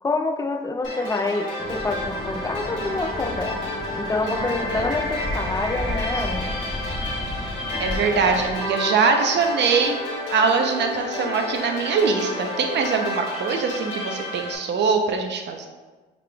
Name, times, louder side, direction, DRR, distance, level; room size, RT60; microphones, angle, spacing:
voice 1, 0.0-3.6 4.0-6.5, left 3 dB, 15° left, 7 dB, 0.3 m, -27 dB
sound 1, 0.8-14.6, left 1 dB, 70° left, 1.4 m, -30 dB
sound 2, 1.6-8.5, left 1 dB, ahead, 0.8 m, -33 dB
voice 2, 4.2-4.9 7.8-10.0 10.3-15.7, right 5 dB, 60° right, 4 dB, 0.6 m, -23 dB
4.9 x 3.7 x 2.3 m, 1.3 s
cardioid pair, 90°, 20 cm